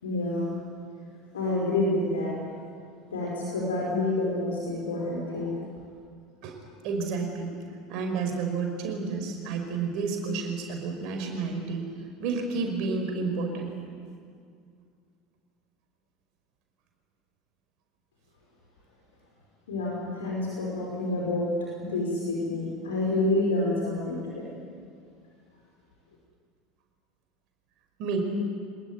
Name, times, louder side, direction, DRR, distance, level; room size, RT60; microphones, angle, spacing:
voice 1, 0.0-0.5 1.3-2.4 3.1-5.6 19.7-21.5 21.8-24.5, left 2 dB, 70° left, -3 dB, 5.1 m, -28 dB
voice 2, 6.8-7.6 7.9-11.9 12.2-13.8 28.0-28.2, right 4 dB, 50° right, 4 dB, 5.4 m, -30 dB
25.5 x 20.0 x 9.6 m, 2.2 s
figure-of-eight pair, 70°, 0 cm